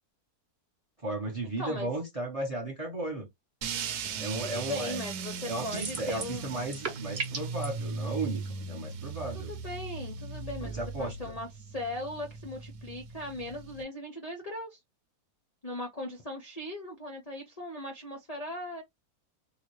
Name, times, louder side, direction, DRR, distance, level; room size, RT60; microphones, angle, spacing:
voice 1, 1.0-3.3 4.2-5.0 5.5-9.5 10.6-11.3, right 2 dB, 30° right, 0.8 m, -35 dB
voice 2, 1.6-1.9 4.4-6.4 9.5-14.8 15.6-18.8, left 1 dB, 40° left, 0.5 m, -38 dB
sound 1, 3.6-13.8, right 5 dB, 80° right, 1.2 m, -38 dB
sound 2, 5.7-6.4 6.6-7.7, right 4 dB, 45° right, 1.1 m, -35 dB
3.8 x 2.4 x 3.0 m
omnidirectional pair, 1.6 m